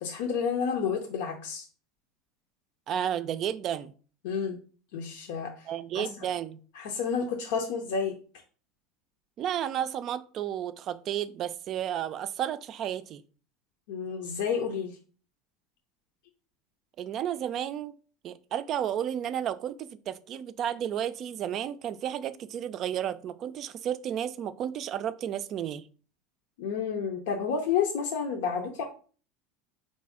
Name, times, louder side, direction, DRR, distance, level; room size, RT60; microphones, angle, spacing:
voice 1, 0.0-1.7 4.2-4.6 4.9-5.7 5.9-6.1 6.7-8.2 13.9-15.0 26.6-28.8, left 6 dB, 80° left, 0.6 m, -30 dB
voice 2, 2.9-3.9 5.7-6.6 9.4-13.2 17.0-17.9 18.2-25.9, right 10 dB, 45° right, 0.3 m, -32 dB
4.1 x 2.7 x 4.8 m
supercardioid pair, 115°, 0 cm